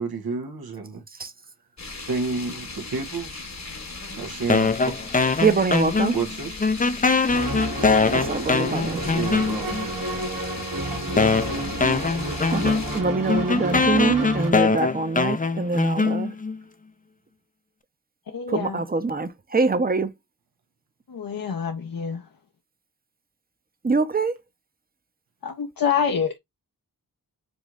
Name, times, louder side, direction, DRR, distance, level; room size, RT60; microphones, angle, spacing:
voice 1, 0.0-1.0 2.1-3.6 4.2-4.7 6.1-6.6 8.7-9.8, right 4 dB, 85° right, 1.0 m, -30 dB
sound 1, 1.8-13.0, left 3 dB, 50° left, 1.2 m, -37 dB
sound 2, 4.5-6.3 6.6-9.9 10.6-10.7 11.2-16.6, left 4 dB, 25° left, 0.4 m, -22 dB
voice 2, 5.4-6.2 8.1-9.0 12.5-16.3 18.5-20.1 23.8-24.4, right 4 dB, 25° right, 0.7 m, -24 dB
sound 3, 7.3-14.5, right 1 dB, 65° right, 1.5 m, -30 dB
voice 3, 18.3-18.8 21.1-22.2 25.4-26.4, left 7 dB, 70° left, 0.7 m, -26 dB
5.2 x 3.1 x 2.4 m
wide cardioid pair, 55°, 36 cm